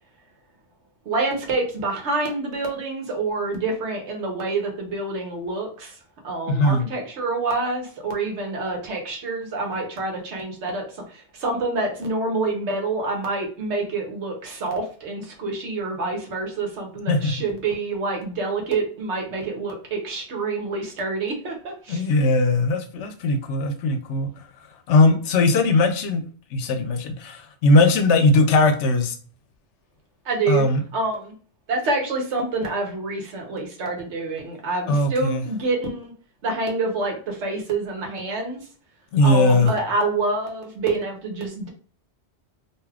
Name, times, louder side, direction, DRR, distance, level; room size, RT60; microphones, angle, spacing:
voice 1, 1.0-5.9 6.2-22.1 30.2-30.6 30.9-31.3 31.7-36.1 36.4-38.6 39.2-41.7, right 3 dB, 80° right, 2 dB, 1.1 m, -27 dB
voice 2, 6.5-6.9 17.1-17.3 21.9-24.4 24.9-26.2 26.5-29.2 30.5-30.8 34.9-35.5 39.1-39.7, left 2 dB, 85° left, 7 dB, 0.9 m, -19 dB
2.7 x 2.3 x 3.3 m, 0.42 s
omnidirectional pair, 1.2 m